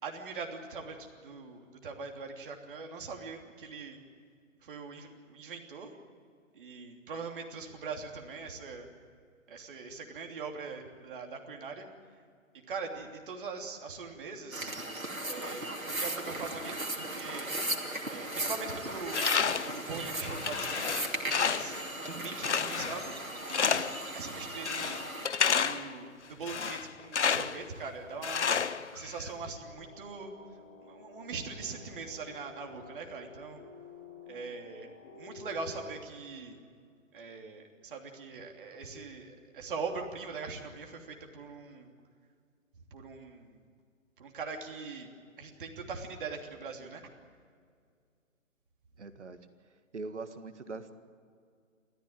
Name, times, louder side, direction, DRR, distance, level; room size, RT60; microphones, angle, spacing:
voice 1, 0.0-4.0 4.6-5.9 6.5-8.9 9.5-11.9 12.7-14.7 15.3-17.5 18.1-19.3 19.6-21.8 22.2-23.1 23.4-25.0 25.6-28.5 28.9-30.3 30.8-33.6 34.3-34.9 35.2-36.6 37.1-41.9 42.9-43.6 44.2-45.1 45.4-47.1, right 4 dB, 40° right, 3 dB, 3.1 m, -41 dB
sound 1, 14.5-25.3, right 1 dB, 90° right, 2.9 m, -37 dB
Tools, 19.1-19.8 20.2-21.8 22.4-23.1 23.5-24.1 24.7-25.9 26.4-27.6 28.2-29.3, left 6 dB, 60° left, 1.0 m, -30 dB
sound 2, 29.7-36.0, left 4 dB, 20° left, 2.8 m, -51 dB
voice 2, 49.0-49.4 49.9-50.9, right 3 dB, 60° right, 9 dB, 1.8 m, -41 dB
30.0 x 14.0 x 8.9 m, 2.2 s
figure-of-eight pair, 140°, 40 cm